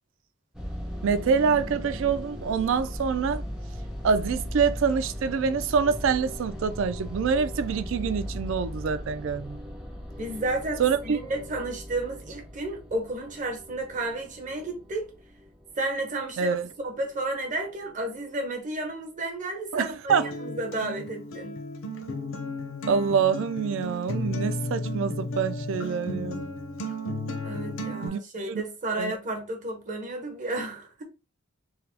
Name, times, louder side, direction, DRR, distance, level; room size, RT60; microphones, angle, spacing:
sound 1, 0.5-18.9, equal, 5° right, 0.5 m, -39 dB
voice 1, 1.0-3.4 4.0-9.6 10.8-11.2 16.4-16.7 19.7-20.3 22.9-26.5 28.0-28.2 28.5-28.6 29.0-29.1, right 6 dB, 60° right, 0.3 m, -26 dB
voice 2, 10.2-15.1 15.8-16.6 16.8-21.6 27.4-31.0, right 2 dB, 35° right, 0.8 m, -32 dB
Acoustic guitar, 20.1-28.1, left 1 dB, 70° left, 0.6 m, -34 dB
3.9 x 2.1 x 2.8 m
head